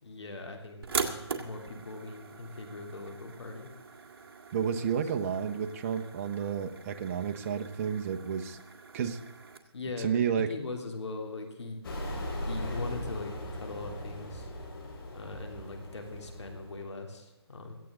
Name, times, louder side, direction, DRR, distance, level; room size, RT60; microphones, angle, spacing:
voice 1, 0.0-3.7 4.8-4.9 9.7-11.8 12.5-14.5 15.1-17.7, left 3 dB, 80° left, 3 dB, 3.2 m, -40 dB
sound 1, 0.8-9.6, right 5 dB, 55° right, 2.1 m, -41 dB
voice 2, 4.5-8.6 8.9-9.2 10.0-10.5, right 7 dB, 30° right, 6 dB, 1.0 m, -31 dB
sound 2, 11.8-16.8, left 1 dB, 55° left, 4.9 m, -39 dB
17.0 x 15.0 x 3.9 m, 1.0 s
hypercardioid pair, 155°, 14 cm